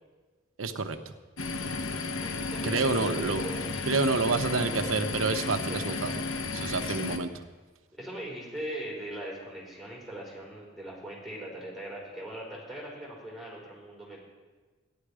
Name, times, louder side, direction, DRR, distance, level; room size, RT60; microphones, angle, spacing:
voice 1, 0.6-1.0 2.6-3.4 3.9-6.1 6.5-7.3, right 3 dB, 90° right, 8 dB, 0.9 m, -28 dB
sound 1, 1.4-7.2, left 3 dB, 90° left, 1.0 m, -33 dB
voice 2, 1.9-3.8 5.5-6.1 7.9-14.2, right 1 dB, ahead, -4 dB, 4.8 m, -41 dB
14.5 x 11.0 x 5.0 m, 1.3 s
head